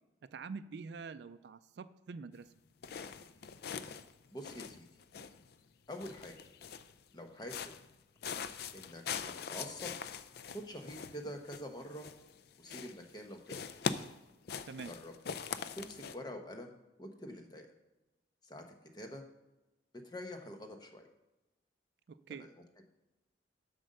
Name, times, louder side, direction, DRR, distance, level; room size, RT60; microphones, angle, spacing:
voice 1, 0.3-2.5 14.6-14.9 22.1-22.4, right 5 dB, 60° right, 11 dB, 0.4 m, -45 dB
sound 1, 2.8-5.5 5.9-7.0 7.4-7.9 8.2-12.4 12.7-13.2 13.5-16.2, left 6 dB, 55° left, 0.4 m, -42 dB
voice 2, 4.3-4.9 5.9-6.3 7.1-7.7 8.7-9.9 10.5-12.1 12.6-13.6 14.9-15.1 15.7-16.7 17.0-17.7 18.4-18.6 18.9-19.2 20.0-21.0, equal, 20° left, 4 dB, 0.9 m, -46 dB
7.7 x 5.2 x 6.5 m, 1.0 s
head